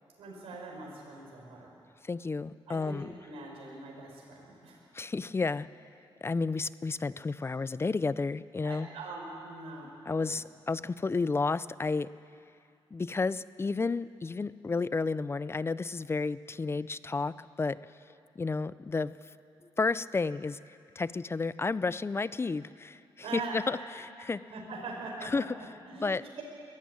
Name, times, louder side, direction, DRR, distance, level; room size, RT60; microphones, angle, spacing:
voice 1, 0.2-1.7 2.7-4.8 8.6-10.4 23.2-23.6 24.5-26.4, right 3 dB, 85° right, -1 dB, 5.1 m, -42 dB
voice 2, 2.1-3.1 4.9-5.7 6.2-8.9 10.1-12.1 12.9-17.8 18.4-19.1 19.8-20.6 21.0-23.0 23.3-24.4 25.2-25.4 26.0-26.2, left 4 dB, 25° left, 17 dB, 0.5 m, -31 dB
21.5 x 14.0 x 9.7 m, 2.5 s
cardioid pair, 95°, 10 cm